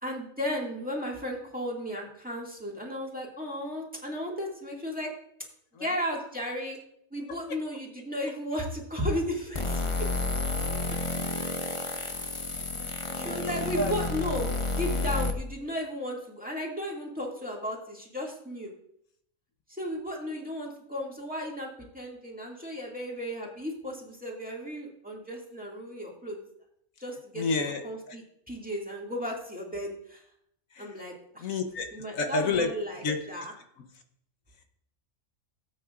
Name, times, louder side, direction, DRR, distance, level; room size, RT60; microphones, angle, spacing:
voice 1, 0.0-5.1 5.8-6.8 7.1-10.1 12.0-12.1 12.4-12.7 13.1-18.7 19.7-26.4 27.0-30.2 30.8-31.5 31.9-33.5, equal, 5° right, -2 dB, 2.0 m, -35 dB
sound 1, 9.5-15.3, left 2 dB, 30° left, 0.7 m, -30 dB
voice 2, 12.5-13.9 14.4-14.5 27.3-27.8 28.1-28.2 30.7-31.0 31.4-31.9 32.1-32.7 33.0-33.2, left 3 dB, 75° left, 5 dB, 1.3 m, -31 dB
17.5 x 8.6 x 2.5 m, 0.72 s
omnidirectional pair, 1.4 m